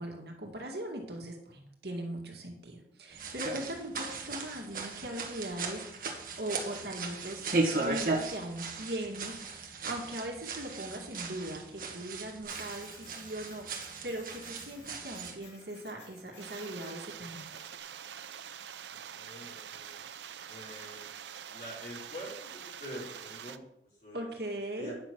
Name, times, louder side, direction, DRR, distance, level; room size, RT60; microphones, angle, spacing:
voice 1, 0.0-17.5 24.1-24.9, right 1 dB, 70° right, 1 dB, 2.1 m, -40 dB
sound 1, 3.1-15.4, right 3 dB, 50° right, 1.5 m, -37 dB
Printer, 12.4-17.8, left 2 dB, 85° left, 3.7 m, -56 dB
sound 2, 16.4-23.6, right 8 dB, 90° right, 0.5 m, -45 dB
voice 2, 18.9-19.9 20.5-21.0 21.5-24.3 24.8-24.9, equal, 45° left, -5 dB, 4.4 m, -46 dB
9.5 x 6.2 x 6.1 m, 0.76 s
head